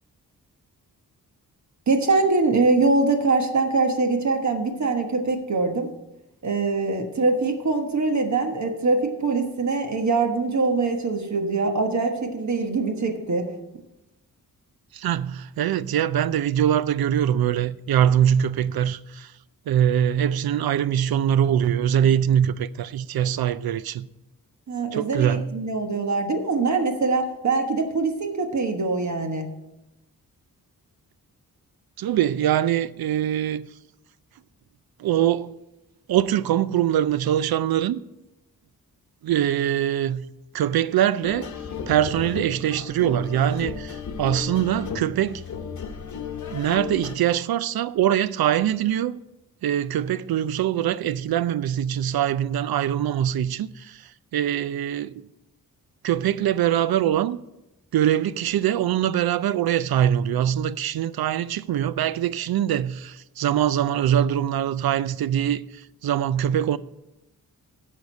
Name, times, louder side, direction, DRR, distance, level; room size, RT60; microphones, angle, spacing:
voice 1, 1.9-5.9 6.4-13.5 24.7-29.5, right 3 dB, 50° right, 1.3 m, -23 dB
voice 2, 14.9-19.3 19.7-24.1 24.9-25.5 32.0-33.7 35.0-35.5 36.1-38.0 39.2-40.3 40.5-41.5 41.9-45.4 46.5-49.2 49.6-54.0 54.3-55.2 56.0-57.4 57.9-65.6 66.0-66.8, right 10 dB, 85° right, 0.5 m, -23 dB
sound 1, 41.2-47.2, left 6 dB, 55° left, 1.0 m, -34 dB
10.5 x 6.6 x 5.3 m
wide cardioid pair, 115°, 36 cm